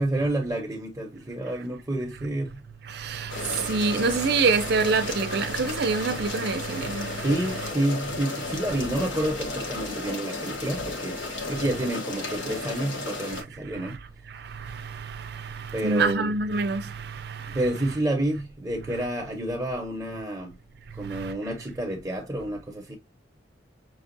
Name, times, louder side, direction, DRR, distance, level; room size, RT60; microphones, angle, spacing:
voice 1, 0.0-2.6 7.2-11.2 11.5-14.0 15.7-16.3 17.5-20.6 21.0-22.9, right 1 dB, 15° right, 0.9 m, -29 dB
voice 2, 2.9-7.1 15.8-16.9, right 4 dB, 60° right, 0.5 m, -25 dB
sound 1, 3.3-13.4, left 3 dB, 90° left, 1.1 m, -34 dB
5.9 x 2.4 x 2.6 m
head